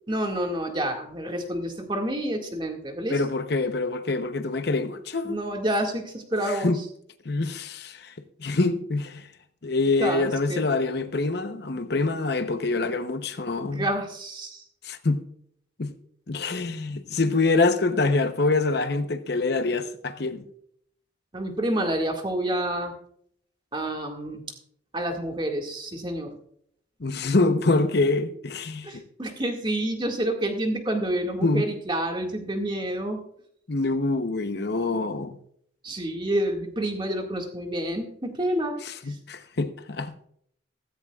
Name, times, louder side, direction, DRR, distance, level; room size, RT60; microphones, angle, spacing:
voice 1, 0.1-3.2 5.2-6.8 10.0-10.7 13.6-14.6 21.3-22.9 23.7-24.4 24.9-26.3 28.8-33.2 35.8-38.8, right 1 dB, 25° right, 1.9 m, -28 dB
voice 2, 3.1-5.4 6.5-6.8 7.2-8.1 8.4-9.3 9.6-13.9 14.8-15.2 15.8-15.9 16.3-20.4 27.0-29.0 31.4-31.7 33.7-35.4 38.8-40.2, left 3 dB, 55° left, 0.8 m, -25 dB
15.5 x 15.0 x 2.4 m
head